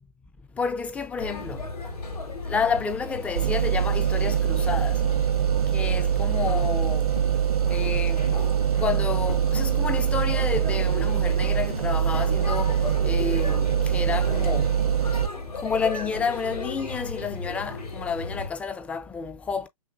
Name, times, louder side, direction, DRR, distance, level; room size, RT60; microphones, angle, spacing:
voice 1, 0.6-1.6 2.5-5.0 5.7-7.1 7.7-8.4 8.8-12.8 13.0-14.7 15.6-19.7, left 5 dB, 5° left, 0.4 m, -30 dB
Male speech man speaking / Child speech kid speaking / Chatter, 1.2-18.5, left 3 dB, 85° left, 2.4 m, -36 dB
sound 1, 3.4-15.3, right 9 dB, 75° right, 0.8 m, -23 dB
sound 2, 6.0-6.8 7.1-8.2 8.5-11.1 11.4-11.7 12.0-14.8, left 4 dB, 65° left, 2.4 m, -45 dB
6.0 x 2.2 x 2.4 m
figure-of-eight pair, 120°, 19 cm